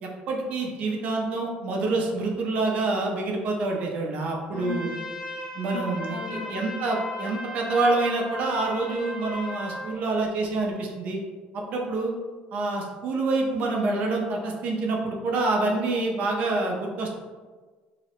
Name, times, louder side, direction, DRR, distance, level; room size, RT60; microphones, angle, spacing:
voice 1, 0.0-4.9 5.5-6.2 6.5-11.2 11.7-12.1 12.5-17.2, right 3 dB, 45° right, 0 dB, 0.4 m, -27 dB
voice 2, 4.5-4.9 5.7-6.6, left 2 dB, 60° left, -1 dB, 0.5 m, -36 dB
Trumpet, 4.5-9.9, left 1 dB, 10° right, 0.7 m, -36 dB
2.7 x 2.0 x 2.8 m, 1.4 s
cardioid pair, 175°, 3 cm